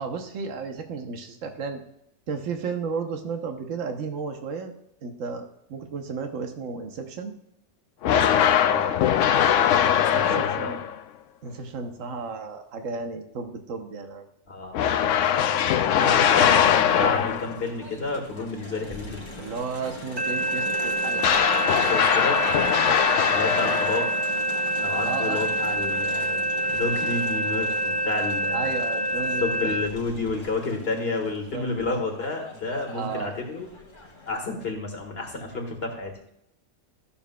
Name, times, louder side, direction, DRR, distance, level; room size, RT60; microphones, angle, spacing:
voice 1, 0.0-1.8 2.3-4.7 5.0-7.3 8.1-8.7 10.1-10.8 11.4-14.3 19.4-21.8 23.6-23.9 25.0-25.4 27.0-27.1 28.5-29.8 31.3-31.7 32.9-33.4, right 5 dB, 75° right, 5 dB, 1.3 m, -34 dB
sound 1, 8.0-11.0 14.7-17.6 21.2-24.3, left 9 dB, 70° left, 0.9 m, -21 dB
voice 2, 8.1-9.0 9.4-10.8 14.5-19.3 21.7-22.4 23.3-24.1 24.8-28.7 29.4-33.7 34.3-36.1, left 3 dB, 50° left, 2 dB, 1.8 m, -31 dB
Crowd, 16.1-34.3, left 2 dB, 25° left, 0.9 m, -41 dB
sound 2, 20.2-29.9, right 1 dB, 40° right, 0.3 m, -26 dB
13.0 x 6.9 x 2.3 m, 0.77 s
omnidirectional pair, 1.4 m